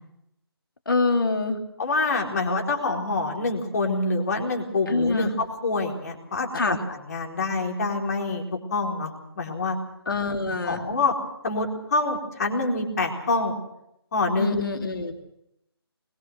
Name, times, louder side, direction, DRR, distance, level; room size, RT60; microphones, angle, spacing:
voice 1, 0.9-1.6 4.9-5.3 6.5-6.8 10.1-10.8 14.4-15.1, left 3 dB, 55° left, 5 dB, 2.9 m, -25 dB
voice 2, 1.8-8.4 8.7-9.8 10.3-10.4 10.6-11.1 11.4-13.6 14.1-14.6, left 3 dB, 40° left, 1 dB, 4.2 m, -26 dB
22.5 x 20.5 x 6.5 m, 0.81 s
figure-of-eight pair, 145°, 13 cm